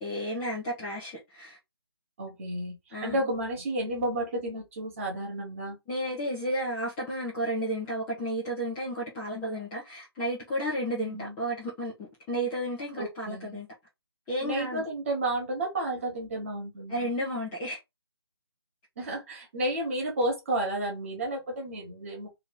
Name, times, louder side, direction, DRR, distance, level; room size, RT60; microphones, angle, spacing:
voice 1, 0.0-1.6 2.9-3.2 5.9-13.7 14.3-14.8 16.9-17.8, equal, 5° left, 0.4 m, -32 dB
voice 2, 2.2-5.8 11.0-11.4 12.9-13.6 14.4-17.1 19.0-22.4, right 1 dB, 30° right, 1.3 m, -32 dB
2.8 x 2.7 x 3.6 m
figure-of-eight pair, 150°, 14 cm